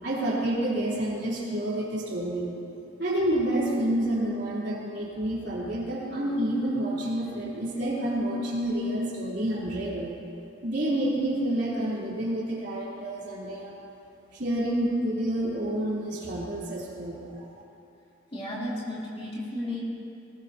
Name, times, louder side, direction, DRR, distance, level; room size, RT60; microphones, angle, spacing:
voice 1, 0.0-2.5 3.0-10.2 10.6-13.9 14.3-17.4, right 1 dB, 60° right, -7 dB, 3.5 m, -29 dB
voice 2, 18.3-19.8, left 1 dB, 30° left, -7 dB, 3.1 m, -33 dB
19.5 x 17.5 x 2.8 m, 2.7 s
head